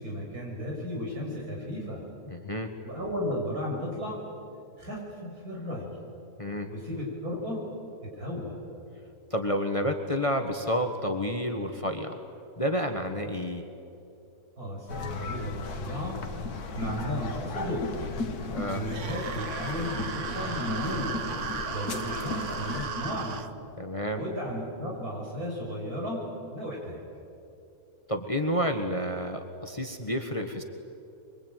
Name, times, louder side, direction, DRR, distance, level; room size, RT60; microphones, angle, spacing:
voice 1, 0.0-2.0 2.8-4.2 4.8-5.9 6.7-7.7 8.0-8.6 14.6-16.2 16.6-18.1 18.7-21.3 21.7-23.5 24.1-27.0, equal, 80° right, -2 dB, 6.9 m, -34 dB
voice 2, 2.3-2.7 6.4-6.7 9.3-12.2 12.6-13.6 18.5-18.8 21.8-21.9 23.8-24.2 28.1-30.6, equal, 20° left, 5 dB, 1.5 m, -30 dB
sound 1, 14.9-22.9, left 3 dB, 90° left, 1.9 m, -36 dB
sound 2, 18.9-23.5, right 6 dB, 60° right, 1.2 m, -36 dB
24.5 x 23.5 x 9.2 m, 2.7 s
omnidirectional pair, 1.6 m